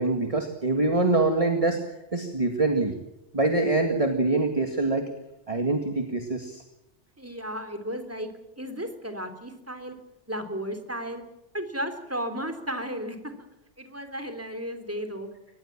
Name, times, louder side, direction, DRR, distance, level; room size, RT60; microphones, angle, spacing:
voice 1, 0.0-1.8 2.1-2.9 3.3-5.1 5.5-6.6, right 2 dB, 30° right, 4 dB, 2.1 m, -24 dB
voice 2, 7.2-8.3 8.6-9.9 10.3-11.2 11.5-13.3 13.8-15.3, equal, 10° right, 6 dB, 3.2 m, -34 dB
24.5 x 20.0 x 7.4 m, 0.93 s
omnidirectional pair, 1.2 m